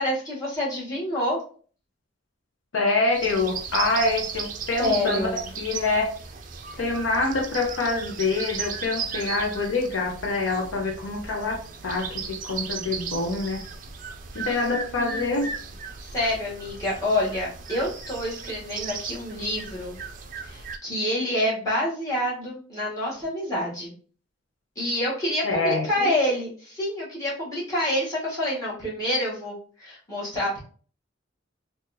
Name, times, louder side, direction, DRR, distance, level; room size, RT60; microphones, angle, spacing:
voice 1, 0.0-1.4 4.8-5.5 14.3-14.4 15.0-15.3 16.1-19.9 20.4-23.9 24.7-30.6, left 1 dB, 20° left, -8 dB, 1.5 m, -27 dB
voice 2, 2.7-5.3 5.6-6.1 6.8-13.6 14.3-15.5 25.4-26.2, left 3 dB, 80° left, 1 dB, 0.7 m, -26 dB
sound 1, 3.1-20.8, right 6 dB, 40° right, 0.4 m, -36 dB
3.9 x 2.5 x 2.6 m, 0.43 s
head